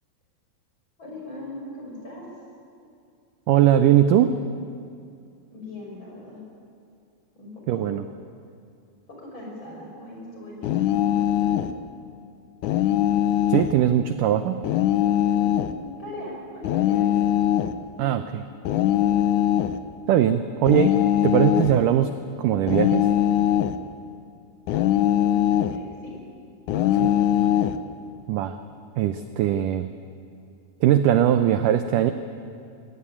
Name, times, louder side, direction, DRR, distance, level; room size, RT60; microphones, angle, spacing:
voice 1, 1.0-2.3 5.5-6.5 7.3-7.9 9.1-11.7 15.4-17.1 20.4-20.6 25.3-26.2 26.7-26.9, left 1 dB, 30° left, -2 dB, 6.4 m, -40 dB
voice 2, 3.5-4.4 7.7-8.0 13.5-14.6 18.0-18.4 20.1-20.9 21.2-22.1 22.4-23.0 27.0-27.1 28.3-28.6 29.0-29.9 30.8-32.1, right 11 dB, 85° right, 9 dB, 1.9 m, -20 dB
sound 1, 10.6-11.7 12.6-13.8 14.6-15.8 16.6-17.7 18.6-19.8 20.7-21.8 22.7-23.8 24.7-25.8 26.7-27.8, left 11 dB, 85° left, 1.8 m, -21 dB
21.5 x 17.0 x 9.9 m, 2.4 s
omnidirectional pair, 4.6 m